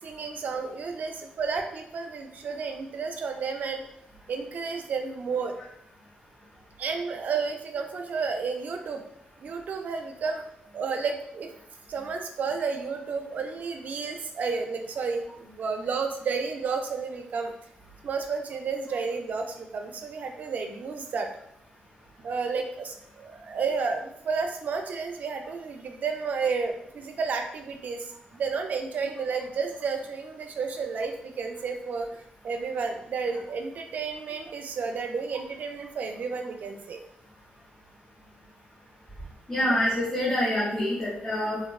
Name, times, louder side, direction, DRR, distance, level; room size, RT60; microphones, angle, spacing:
voice 1, 0.0-3.8 4.3-5.5 6.8-9.0 9.4-10.4 10.7-11.5 11.9-17.5 18.0-21.3 22.2-32.1 32.4-37.0 39.6-39.8, right 5 dB, 60° right, 4 dB, 0.4 m, -31 dB
voice 2, 39.5-41.6, left 1 dB, 15° left, -8 dB, 0.8 m, -26 dB
3.5 x 2.2 x 2.3 m, 0.77 s
cardioid pair, 120°, 3 cm